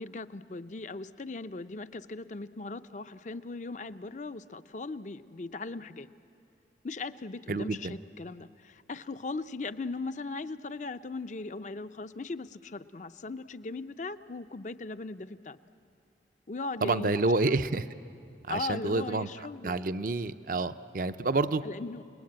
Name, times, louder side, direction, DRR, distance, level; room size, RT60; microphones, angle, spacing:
voice 1, 0.0-6.1 6.8-15.6 16.5-17.6 18.5-19.8 21.6-22.0, left 3 dB, 45° left, 12 dB, 0.6 m, -38 dB
voice 2, 7.5-8.0 16.8-17.9 18.5-19.3 19.6-21.6, right 3 dB, 50° right, 12 dB, 0.6 m, -28 dB
29.5 x 20.0 x 8.7 m, 2.6 s
head